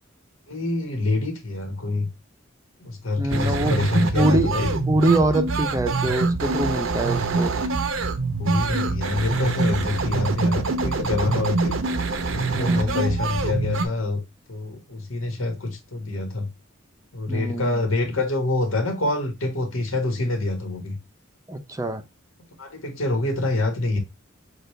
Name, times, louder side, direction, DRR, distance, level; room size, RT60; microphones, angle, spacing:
voice 1, 0.5-2.1 2.8-4.7 7.6-7.7 8.4-11.8 12.3-14.2 14.5-16.5 17.1-21.0 22.6-24.0, left 2 dB, 85° left, 1.6 m, -26 dB
voice 2, 3.2-7.5 12.5-13.0 17.3-17.8 21.5-22.0, right 1 dB, 15° right, 0.6 m, -24 dB
sound 1, 3.3-13.9, right 3 dB, 75° right, 0.8 m, -25 dB
6.5 x 2.5 x 3.2 m
head